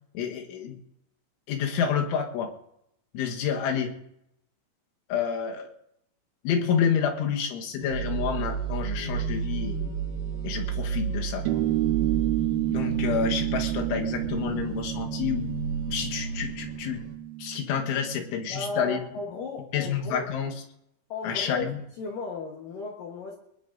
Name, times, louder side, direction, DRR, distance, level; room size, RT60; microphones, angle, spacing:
voice 1, 0.2-0.8 1.5-2.5 3.1-3.9 5.1-5.7 6.4-10.0 10.4-11.6 12.7-15.5 15.9-17.0 17.4-19.0 19.7-20.5 21.2-21.8, left 7 dB, 90° left, 3 dB, 3.8 m, -29 dB
sound 1, 7.8-17.1, right 6 dB, 60° right, 3.4 m, -32 dB
sound 2, 11.5-18.4, right 16 dB, 80° right, 2.2 m, -30 dB
voice 2, 18.5-20.2 21.1-21.7 22.0-23.4, left 3 dB, 65° left, -1 dB, 2.3 m, -35 dB
23.0 x 20.0 x 2.6 m, 0.81 s
omnidirectional pair, 5.3 m